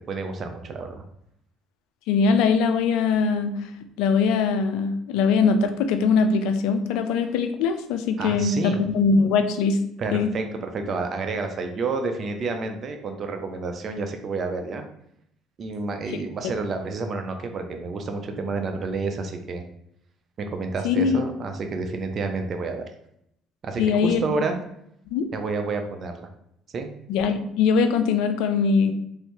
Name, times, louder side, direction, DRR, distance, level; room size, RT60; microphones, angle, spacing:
voice 1, 0.1-1.0 8.2-8.8 10.0-14.8 15.6-19.6 20.4-22.8 23.6-24.6 25.3-26.3 26.7-26.9, right 3 dB, 45° right, 5 dB, 0.5 m, -29 dB
voice 2, 2.1-3.5 4.0-9.8 10.1-10.3 20.8-21.2 23.8-24.2 25.1-25.3 27.1-28.9, left 5 dB, 85° left, 8 dB, 0.4 m, -21 dB
3.2 x 2.7 x 3.0 m, 0.75 s
supercardioid pair, 90°, 0 cm